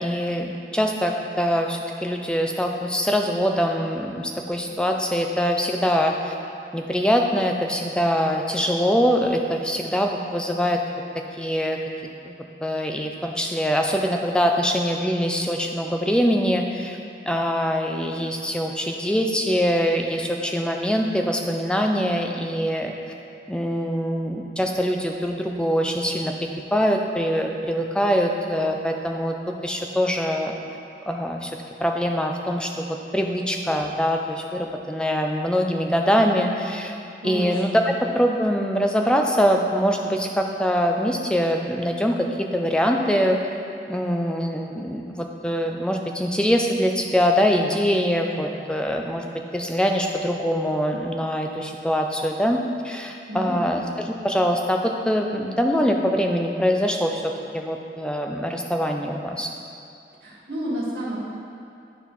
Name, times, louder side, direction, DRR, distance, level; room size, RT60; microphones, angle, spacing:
voice 1, 0.0-6.3 6.7-10.8 11.4-11.8 12.2-12.3 12.6-17.0 17.3-22.9 23.5-26.3 26.7-30.5 31.0-36.9 37.2-43.4 43.9-49.2 49.5-52.6 52.8-53.8 54.1-59.5, equal, 5° left, 2 dB, 0.4 m, -23 dB
voice 2, 37.2-37.9 53.3-53.8 60.2-61.2, right 1 dB, 70° right, -5 dB, 1.8 m, -30 dB
11.0 x 4.5 x 4.0 m, 2.5 s
head